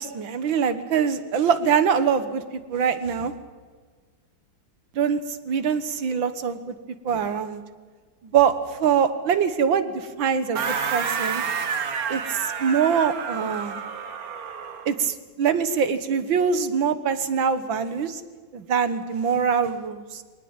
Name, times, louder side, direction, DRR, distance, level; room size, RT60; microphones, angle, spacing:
voice 1, 0.0-3.3 4.9-6.8 7.0-7.6 8.2-11.4 12.1-13.8 14.9-18.2 18.5-20.2, right 7 dB, 75° right, 11 dB, 2.1 m, -24 dB
sound 1, 10.5-14.9, right 6 dB, 50° right, 1.6 m, -29 dB
23.0 x 19.0 x 8.9 m, 1.5 s
omnidirectional pair, 2.1 m